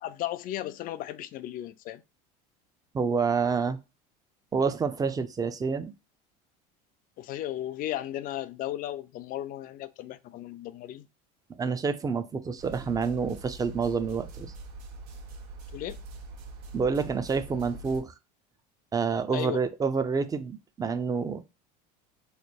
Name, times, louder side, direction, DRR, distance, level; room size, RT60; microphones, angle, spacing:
voice 1, 0.0-2.0 7.2-11.1 15.7-16.0 19.3-19.6, left 13 dB, 45° left, 0.4 m, -35 dB
voice 2, 2.9-3.8 4.5-5.9 11.6-14.5 16.7-18.1 18.9-21.4, right 5 dB, 20° right, 0.5 m, -28 dB
sound 1, 12.6-18.0, right 3 dB, 80° right, 0.8 m, -43 dB
3.2 x 2.1 x 4.3 m
supercardioid pair, 100°, 20 cm